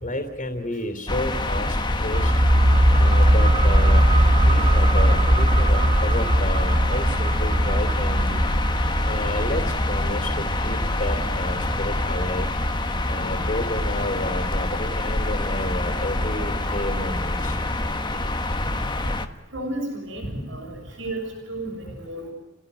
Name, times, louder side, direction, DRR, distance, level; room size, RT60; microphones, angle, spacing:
voice 1, 0.0-2.3 3.0-4.1 4.3-8.4 9.0-12.5 13.0-17.6, left 1 dB, 45° left, 5 dB, 3.1 m, -31 dB
sound 1, 1.1-19.3, left 2 dB, 25° left, 1.3 m, -26 dB
sound 2, 2.1-13.5 13.8-13.9, right 1 dB, 25° right, 0.9 m, -20 dB
voice 2, 16.3-16.7 18.1-18.2 19.5-22.3, right 1 dB, 90° right, 1 dB, 6.8 m, -33 dB
30.0 x 17.0 x 9.7 m, 0.91 s
head